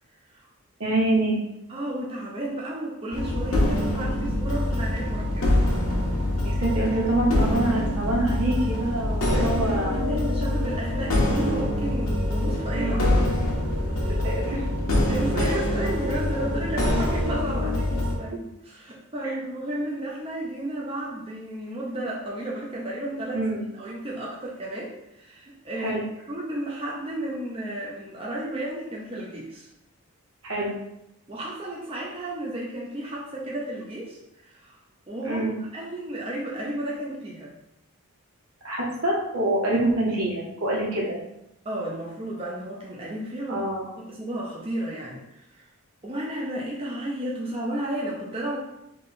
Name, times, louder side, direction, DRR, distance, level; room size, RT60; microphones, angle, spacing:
voice 1, 0.8-1.4 6.4-9.9 12.7-13.3 14.0-14.6 19.2-19.3 23.3-23.7 25.8-26.0 30.4-30.7 35.2-35.5 38.6-41.2 43.5-43.9, right 1 dB, 70° right, -4 dB, 1.5 m, -26 dB
voice 2, 1.7-5.5 9.3-13.2 13.8-14.2 15.1-23.5 23.7-26.0 26.3-29.7 31.3-34.8 35.1-35.5 35.7-37.5 41.6-43.6 44.0-45.7 46.0-48.6, right 1 dB, 25° right, -4 dB, 0.7 m, -33 dB
sound 1, 3.1-18.1, left 1 dB, 70° left, 1.1 m, -25 dB
3.7 x 3.2 x 4.1 m, 0.85 s
head